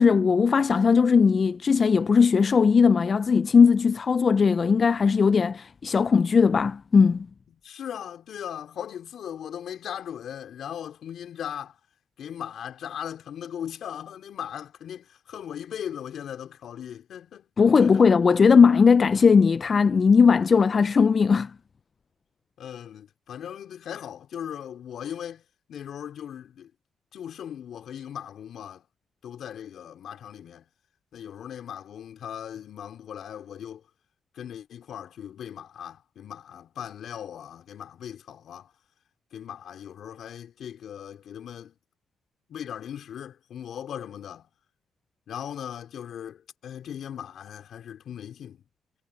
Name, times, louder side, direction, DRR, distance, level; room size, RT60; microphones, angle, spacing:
voice 1, 0.0-7.3 17.6-21.5, left 5 dB, 40° left, 0.4 m, -18 dB
voice 2, 7.6-11.8 12.2-17.5 17.8-18.1 20.3-20.4 22.6-25.4 25.7-26.7 27.1-28.8 29.2-30.7 31.1-33.8 34.3-38.7 39.3-41.7 42.5-44.5 45.3-48.6, left 9 dB, 65° left, 4.1 m, -38 dB
cardioid pair, 90°, 0 cm